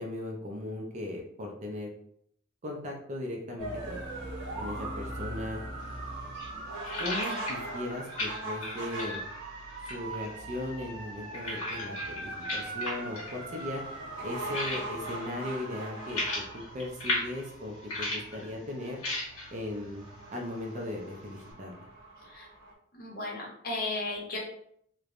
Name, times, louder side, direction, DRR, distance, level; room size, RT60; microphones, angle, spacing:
voice 1, 0.0-1.9 2.6-4.0 4.5-5.6 7.0-9.2 9.9-13.8 14.2-16.2 16.5-19.0 19.5-20.0 20.3-21.9, left 1 dB, 35° right, 0 dB, 0.4 m, -37 dB
sound 1, 3.6-22.7, right 2 dB, 70° right, 0.8 m, -40 dB
sound 2, 5.8-21.5, left 2 dB, 85° left, 1.1 m, -39 dB
voice 2, 22.9-24.4, left 2 dB, 45° left, -3 dB, 0.8 m, -35 dB
3.1 x 2.1 x 2.4 m, 0.68 s
head